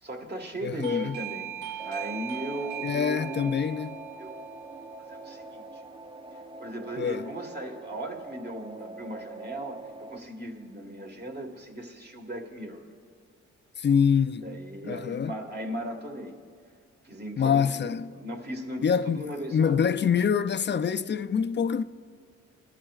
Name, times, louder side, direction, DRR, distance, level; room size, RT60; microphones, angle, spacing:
voice 1, 0.0-1.5 1.8-3.6 4.2-4.3 5.1-5.8 6.6-12.9 14.4-16.3 17.0-17.9 18.2-19.8, right 1 dB, 35° right, 1.6 m, -37 dB
voice 2, 0.6-1.2 2.8-3.9 7.0-7.3 13.8-14.6 14.8-15.3 17.4-18.1 18.8-21.8, left 7 dB, 40° left, 0.4 m, -25 dB
Doorbell, 0.8-7.3, right 9 dB, 85° right, 0.6 m, -41 dB
sound 1, 1.8-10.2, right 2 dB, 20° right, 0.5 m, -44 dB
21.5 x 11.5 x 2.4 m
cardioid pair, 80°, 29 cm